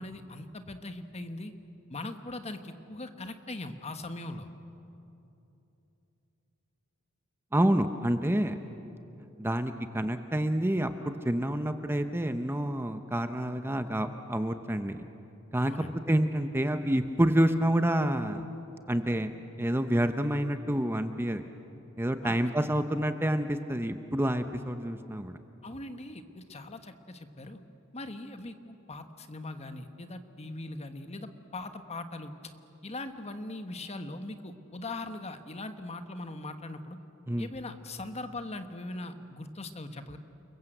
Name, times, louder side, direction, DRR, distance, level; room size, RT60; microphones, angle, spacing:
voice 1, 0.0-1.5 1.9-4.5 15.6-15.9 22.2-22.4 25.6-27.6 27.9-32.5 32.8-37.0 37.4-40.2, left 2 dB, 30° left, 8 dB, 1.3 m, -40 dB
voice 2, 7.5-8.6 9.4-15.1 15.5-15.7 16.1-18.4 18.9-19.3 19.6-21.4 22.0-25.4 37.3-37.5, right 1 dB, 10° right, 8 dB, 0.7 m, -28 dB
30.0 x 22.0 x 7.9 m, 2.9 s
head